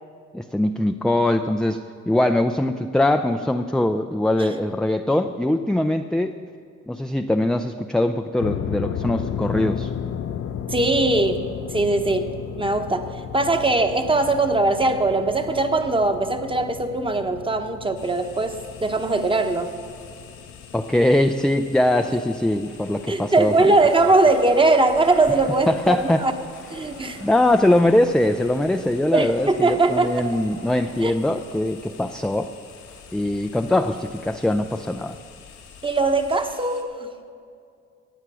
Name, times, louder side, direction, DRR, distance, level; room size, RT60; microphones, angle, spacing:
voice 1, 0.3-6.4 6.9-9.9 20.7-23.5 25.7-26.2 27.2-32.5 33.1-35.1, left 1 dB, ahead, 6 dB, 0.4 m, -22 dB
sound 1, 8.4-23.6, left 9 dB, 50° left, 0.7 m, -34 dB
voice 2, 10.7-11.4 11.7-12.3 12.6-19.7 23.1-26.3 26.7-27.2 29.1-30.3 31.0-31.1 35.8-37.1, right 2 dB, 15° right, 7 dB, 1.1 m, -21 dB
sound 2, 17.9-36.8, left 6 dB, 75° left, 1.9 m, -46 dB
sound 3, 22.6-31.0, right 3 dB, 80° right, 4.5 m, -40 dB
19.0 x 8.1 x 6.2 m, 2.3 s
cardioid pair, 90°, 30 cm